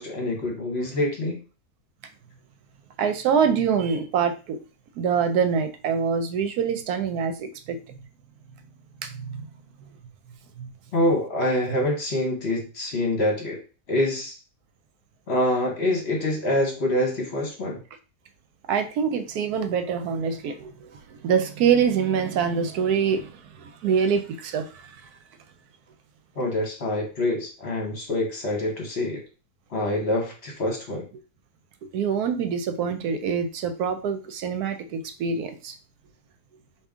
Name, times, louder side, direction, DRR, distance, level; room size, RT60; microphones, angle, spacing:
voice 1, 0.0-1.4 10.9-13.6 13.9-14.3 15.3-17.8 26.4-29.2 29.7-31.0, left 1 dB, 45° left, 1 dB, 1.2 m, -25 dB
voice 2, 3.0-4.6 5.0-8.0 9.0-9.5 10.6-10.7 18.7-25.0 31.9-35.8, right 6 dB, 75° right, 9 dB, 1.1 m, -25 dB
5.1 x 2.7 x 3.5 m, 0.34 s
omnidirectional pair, 1.7 m